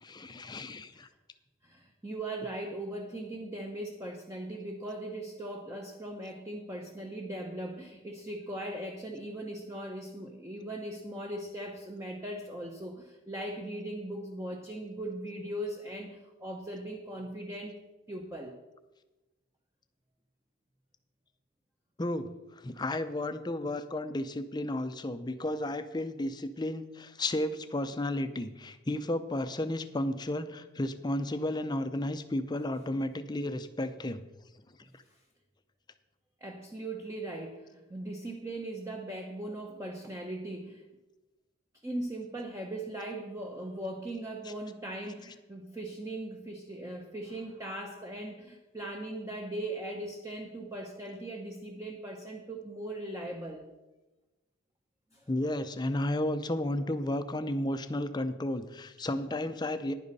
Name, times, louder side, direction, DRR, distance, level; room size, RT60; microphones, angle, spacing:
voice 1, 0.0-1.1 22.0-34.2 55.3-59.9, left 1 dB, 20° left, 10 dB, 0.5 m, -33 dB
voice 2, 1.6-17.8 18.1-18.6 35.1-35.2 36.4-40.8 41.8-53.7 55.1-55.3, right 1 dB, 15° right, 2 dB, 0.8 m, -39 dB
10.5 x 10.5 x 4.1 m, 1.1 s
head